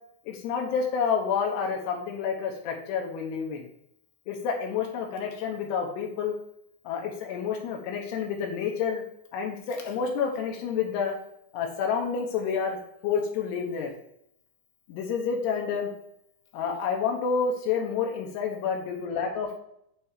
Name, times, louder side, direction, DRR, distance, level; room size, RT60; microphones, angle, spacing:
voice 1, 0.3-3.7 4.3-6.3 6.8-9.0 9.3-11.1 11.5-13.9 14.9-15.9 16.5-19.6, left 6 dB, 80° left, 1 dB, 3.1 m, -29 dB
8.8 x 3.4 x 4.9 m, 0.75 s
omnidirectional pair, 4.8 m